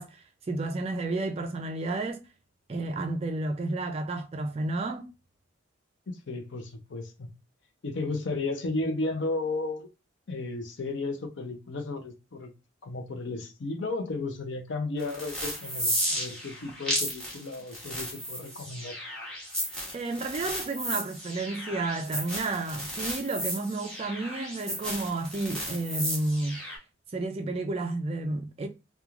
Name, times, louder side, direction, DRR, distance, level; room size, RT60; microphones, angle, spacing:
voice 1, 0.0-2.3 2.7-5.1 19.9-26.7 27.1-28.7, right 2 dB, 30° right, 0.3 m, -31 dB
voice 2, 6.1-7.3 7.8-9.9 10.3-12.5 12.8-19.0, left 3 dB, 60° left, 0.5 m, -34 dB
sound 1, 15.0-26.8, equal, 5° left, 0.9 m, -34 dB
3.0 x 2.3 x 2.4 m
head